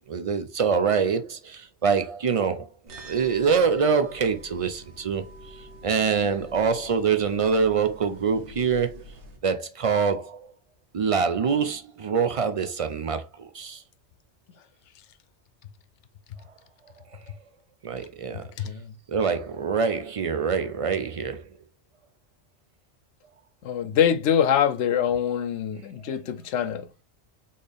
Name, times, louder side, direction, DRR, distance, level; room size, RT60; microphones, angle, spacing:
voice 1, 0.1-2.7 3.0-5.2 5.5-9.0 9.4-10.5 10.9-13.8 17.8-18.7 19.1-21.4, right 6 dB, 60° right, 0.3 m, -25 dB
sound 1, 2.9-9.4, right 1 dB, 75° right, 1.3 m, -46 dB
voice 2, 18.3-18.9 23.6-26.9, left 9 dB, 90° left, 0.9 m, -24 dB
4.2 x 3.6 x 3.4 m
omnidirectional pair, 1.2 m